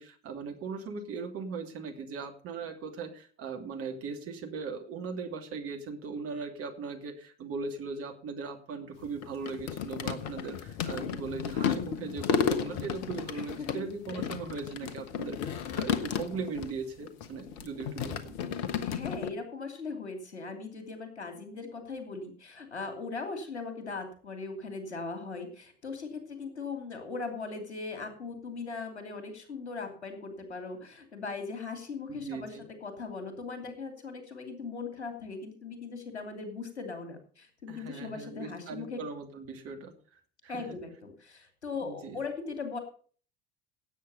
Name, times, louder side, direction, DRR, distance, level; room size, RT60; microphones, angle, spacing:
voice 1, 0.0-18.4 32.1-32.6 37.7-40.6 41.8-42.2, right 5 dB, 45° right, 4 dB, 2.7 m, -39 dB
sound 1, 9.0-16.7 17.0-19.3, left 7 dB, 55° left, 1.4 m, -33 dB
voice 2, 13.3-13.8 14.1-14.2 18.8-39.0 40.5-42.8, left 4 dB, 80° left, 6 dB, 2.8 m, -39 dB
16.5 x 8.3 x 5.4 m, 0.43 s
figure-of-eight pair, 65°, 33 cm